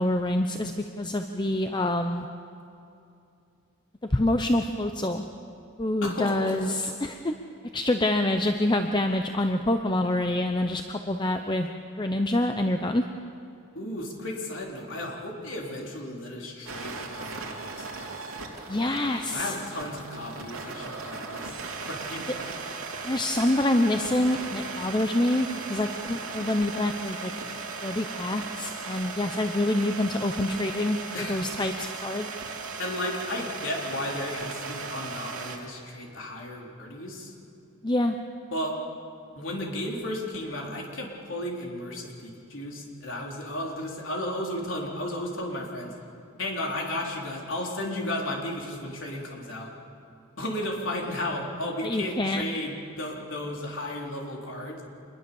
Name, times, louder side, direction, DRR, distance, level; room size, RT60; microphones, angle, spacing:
voice 1, 0.0-2.3 4.1-5.2 5.8-7.4 7.7-11.7 12.0-13.0 18.7-19.5 23.1-27.3 27.8-32.3 37.8-38.2 51.8-52.4, left 1 dB, 20° left, 6 dB, 0.7 m, -26 dB
voice 2, 6.0-6.7 13.7-18.1 19.3-21.6 21.8-22.2 31.1-31.4 32.8-37.3 38.5-38.8 39.4-45.9 46.4-49.7 50.4-54.8, left 1 dB, 65° left, -1 dB, 4.1 m, -34 dB
sound 1, 16.7-35.6, right 4 dB, 75° right, 3.0 m, -37 dB
26.0 x 21.5 x 7.1 m, 2.6 s
head